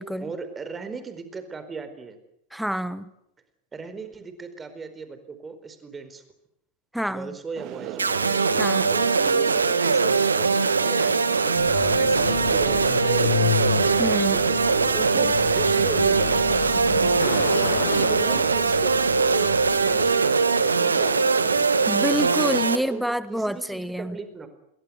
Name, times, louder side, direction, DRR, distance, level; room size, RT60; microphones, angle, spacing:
voice 1, 0.2-2.2 3.7-6.2 7.1-8.1 8.7-13.3 14.9-16.4 17.2-20.5 22.7-24.5, right 4 dB, 15° right, 10 dB, 4.5 m, -37 dB
voice 2, 2.5-3.1 6.9-7.3 8.6-8.9 14.0-14.5 21.9-24.2, equal, ahead, 16 dB, 1.3 m, -27 dB
sound 1, 7.5-22.5, right 11 dB, 40° right, 2.6 m, -36 dB
sound 2, 8.0-22.8, right 4 dB, 75° right, 1.9 m, -21 dB
Truck, 11.5-20.3, left 10 dB, 60° left, 1.6 m, -31 dB
28.5 x 21.5 x 8.1 m, 0.77 s
figure-of-eight pair, 90°, 0 cm